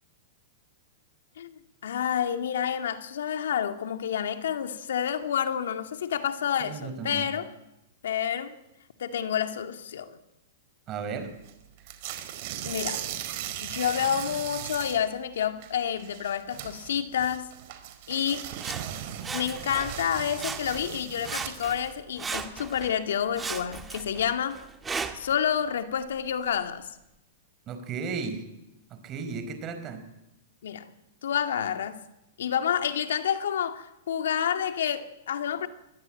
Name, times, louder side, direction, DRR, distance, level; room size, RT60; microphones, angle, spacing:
voice 1, 1.8-7.5 8.0-8.6 9.0-10.1 12.6-13.1 13.6-17.5 18.1-18.5 19.3-24.6 25.1-26.8 30.6-30.9 31.2-32.0 32.4-35.7, left 8 dB, 80° left, 2.2 m, -29 dB
voice 2, 6.6-7.3 10.9-11.3 27.7-28.4 28.9-30.0, right 5 dB, 30° right, 4.9 m, -34 dB
sound 1, 11.5-11.6 11.8-15.1 15.4-15.7 16.0-21.7, right 11 dB, 50° right, 4.4 m, -38 dB
Sawing, 18.6-20.1 20.4-21.0 21.2-22.9 23.4-25.4 26.0-26.1, right 5 dB, 15° right, 1.9 m, -37 dB
23.5 x 18.0 x 9.1 m
hypercardioid pair, 140°, 0 cm